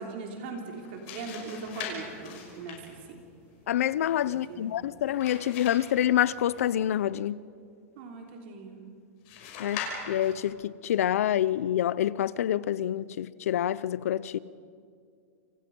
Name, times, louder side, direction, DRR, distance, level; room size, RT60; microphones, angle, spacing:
voice 1, 0.0-3.2 4.2-4.8 8.0-8.8, right 3 dB, 45° right, 3.3 m, -40 dB
sound 1, 0.7-7.1 9.2-10.5, left 6 dB, 40° left, 5.9 m, -42 dB
voice 2, 3.7-7.4 9.6-9.8 10.1-14.4, left 11 dB, 80° left, 0.7 m, -27 dB
29.5 x 27.0 x 5.5 m
supercardioid pair, 175°, 8 cm